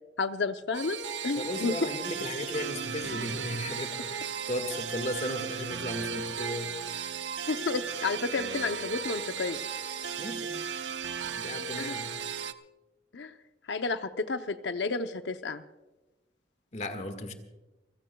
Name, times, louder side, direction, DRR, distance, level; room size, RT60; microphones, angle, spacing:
voice 1, 0.2-1.0 1.2-1.9 7.5-9.6 11.8-12.0 13.1-13.3 13.7-15.6, left 4 dB, 70° left, 0.7 m, -31 dB
sound 1, 0.7-12.5, right 6 dB, 75° right, 0.7 m, -36 dB
voice 2, 1.3-6.7 10.2-10.6 11.3-12.1 16.7-17.3, left 1 dB, 40° left, 1.7 m, -36 dB
30.0 x 16.0 x 2.3 m
head